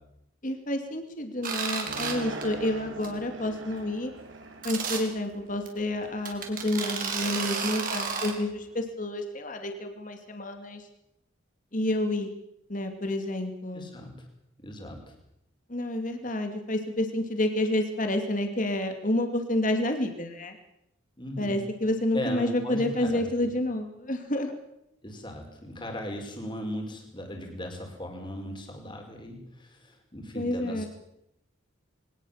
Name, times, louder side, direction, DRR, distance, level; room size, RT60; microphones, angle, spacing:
voice 1, 0.4-4.1 4.6-10.9 11.7-12.3 12.7-13.9 15.7-20.6 21.4-24.5 30.3-30.8, left 1 dB, 40° left, 5 dB, 2.7 m, -29 dB
sound 1, 1.4-2.1 2.4-2.7 3.0-3.1 3.4-3.5 4.6-5.0 5.7-5.8 6.3-8.3, right 5 dB, 45° right, 4.2 m, -31 dB
sound 2, 1.8-6.2, right 2 dB, 65° right, 4.5 m, -41 dB
voice 2, 13.7-14.2 14.6-15.2 21.2-21.6 22.1-23.2 25.0-30.9, left 1 dB, 25° left, 2 dB, 5.0 m, -37 dB
22.5 x 19.5 x 7.5 m, 0.80 s
head